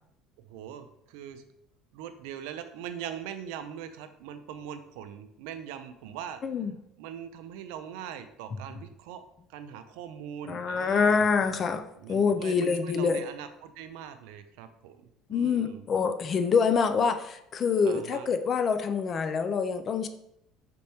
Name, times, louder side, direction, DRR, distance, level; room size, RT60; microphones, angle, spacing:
voice 1, 0.5-1.4 1.9-6.4 7.0-9.2 9.5-11.2 12.0-15.8 17.8-18.3, right 9 dB, 85° right, 9 dB, 0.4 m, -41 dB
voice 2, 6.4-6.8 10.5-11.8 12.1-13.2 15.3-20.1, left 5 dB, 35° left, 9 dB, 0.4 m, -26 dB
5.4 x 3.4 x 2.8 m, 0.76 s
cardioid pair, 135°, 0 cm